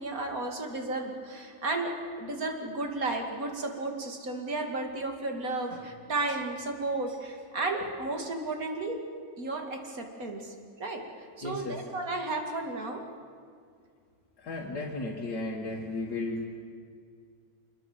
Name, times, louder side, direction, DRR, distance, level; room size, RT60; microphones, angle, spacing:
voice 1, 0.0-1.9 2.2-9.0 9.4-11.0 11.4-13.0, right 2 dB, 60° right, 3 dB, 3.0 m, -33 dB
voice 2, 11.4-11.8 14.4-16.5, left 2 dB, 75° left, -3 dB, 2.5 m, -34 dB
25.0 x 21.5 x 7.5 m, 2.2 s
omnidirectional pair, 1.7 m